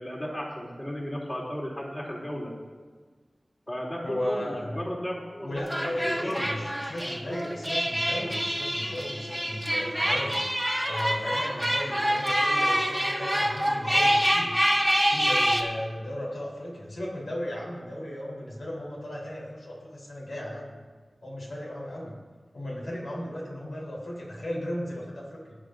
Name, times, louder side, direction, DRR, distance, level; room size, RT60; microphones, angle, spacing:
voice 1, 0.0-2.5 3.7-6.7 11.1-11.2, equal, 30° left, -4 dB, 3.0 m, -35 dB
voice 2, 4.0-4.8 5.4-10.5 10.9-14.6 15.1-20.8 21.2-22.2 22.5-25.6, left 1 dB, 85° left, -4 dB, 3.7 m, -35 dB
sound 1, 5.6-15.6, equal, ahead, 1.7 m, -26 dB
19.0 x 9.3 x 2.6 m, 1.5 s
wide cardioid pair, 50°, 0 cm